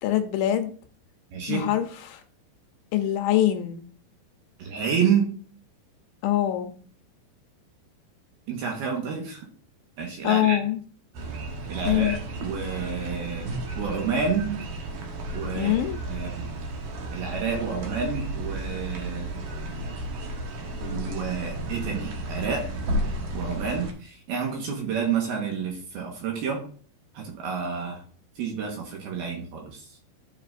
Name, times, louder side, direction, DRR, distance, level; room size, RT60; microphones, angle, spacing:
voice 1, 0.0-0.7 1.5-2.2 2.9-3.8 6.2-6.7 10.2-10.8 11.9-12.1 15.6-16.0, left 12 dB, 80° left, 7 dB, 2.9 m, -24 dB
voice 2, 1.3-1.7 4.6-5.3 8.5-9.5 10.0-10.6 11.7-13.5 13.8-14.6 15.3-15.8 16.1-16.5 17.1-19.3 20.8-22.7 23.3-26.6 27.1-28.0 28.4-29.9, right 6 dB, 70° right, 0 dB, 2.7 m, -29 dB
sound 1, 11.1-23.9, right 1 dB, 85° right, 1.6 m, -33 dB
13.0 x 5.7 x 2.5 m, 0.43 s
omnidirectional pair, 5.5 m